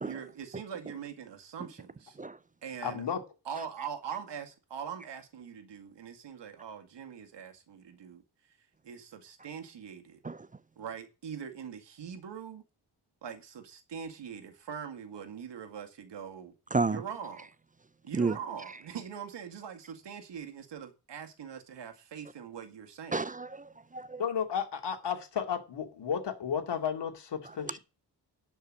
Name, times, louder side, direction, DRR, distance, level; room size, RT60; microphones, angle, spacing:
voice 1, 0.0-2.2 2.6-3.0 3.5-8.2 8.8-10.2 10.8-12.6 13.2-16.5 16.9-17.5 18.0-23.2, right 7 dB, 85° right, 2.1 m, -42 dB
voice 2, 2.8-3.2 24.2-27.8, left 7 dB, 80° left, 2.4 m, -33 dB
voice 3, 16.7-17.0 18.1-18.4 23.1-24.2 27.6-27.8, right 3 dB, 20° right, 0.5 m, -31 dB
11.5 x 5.5 x 7.6 m
cardioid pair, 95°, 41 cm